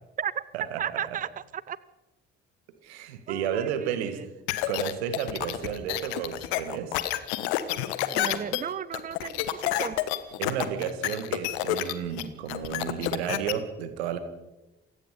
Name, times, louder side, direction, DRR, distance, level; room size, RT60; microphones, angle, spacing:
voice 1, 0.8-1.8 3.3-4.2 8.1-10.0, right 8 dB, 25° right, 19 dB, 0.7 m, -34 dB
voice 2, 2.8-4.2 4.7-7.0 10.4-14.2, right 9 dB, 75° right, 10 dB, 2.0 m, -32 dB
sound 1, 4.5-13.5, left 14 dB, 70° left, 1.3 m, -29 dB
28.0 x 17.0 x 5.4 m, 1.0 s
figure-of-eight pair, 45°, 33 cm